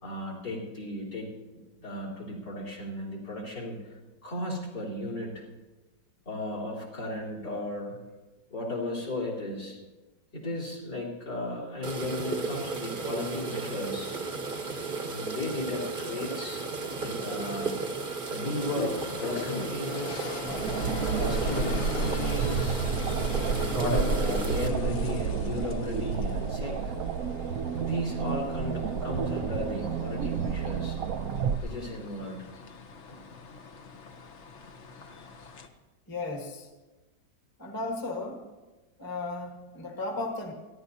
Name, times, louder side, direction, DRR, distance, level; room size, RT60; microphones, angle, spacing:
voice 1, 0.0-3.9 4.2-5.4 6.3-8.0 8.5-9.8 10.3-14.1 15.0-16.7 17.0-17.7 18.3-18.9 19.2-20.3 21.1-22.9 23.4-26.9 27.7-31.0 31.6-32.5 33.1-33.2, left 2 dB, 65° left, -6 dB, 4.0 m, -35 dB
sound 1, 11.8-24.7, right 4 dB, 35° right, 1.0 m, -34 dB
sound 2, 18.5-35.7, left 4 dB, 50° left, 1.0 m, -40 dB
sound 3, 20.5-31.6, right 6 dB, 65° right, 0.9 m, -30 dB
voice 2, 36.1-36.7 37.6-38.5 39.0-40.5, left 2 dB, 15° left, 1 dB, 1.2 m, -35 dB
28.0 x 11.0 x 2.8 m, 1.1 s
omnidirectional pair, 1.9 m